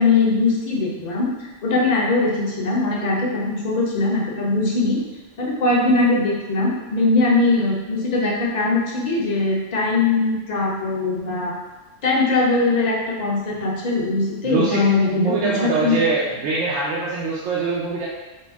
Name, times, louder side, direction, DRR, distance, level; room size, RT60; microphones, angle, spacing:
voice 1, 0.0-5.0 5.4-11.5 12.0-16.0, left 3 dB, 40° left, -4 dB, 0.7 m, -21 dB
voice 2, 14.4-18.1, right 4 dB, 90° right, -6 dB, 1.0 m, -23 dB
4.2 x 2.0 x 3.4 m, 1.1 s
omnidirectional pair, 1.3 m